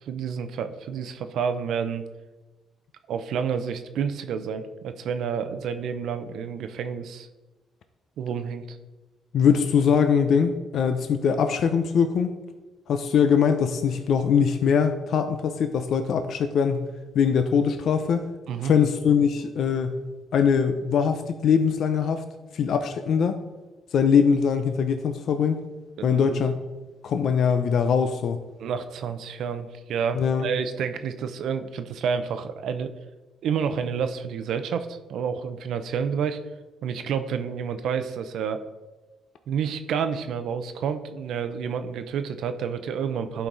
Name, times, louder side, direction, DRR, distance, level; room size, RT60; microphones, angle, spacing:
voice 1, 0.1-2.0 3.1-7.3 8.2-8.8 18.5-18.7 26.0-26.5 28.6-32.9 33.4-36.4 36.8-38.6 39.5-43.5, right 7 dB, 75° right, 9 dB, 0.6 m, -29 dB
voice 2, 9.3-12.3 12.9-16.9 17.1-18.2 18.6-20.0 20.3-22.2 22.5-23.4 23.9-25.6 26.0-26.6 27.0-28.4 30.1-30.5, left 6 dB, 65° left, 8 dB, 0.6 m, -22 dB
11.0 x 4.6 x 3.9 m, 1.1 s
cardioid pair, 90°, 0 cm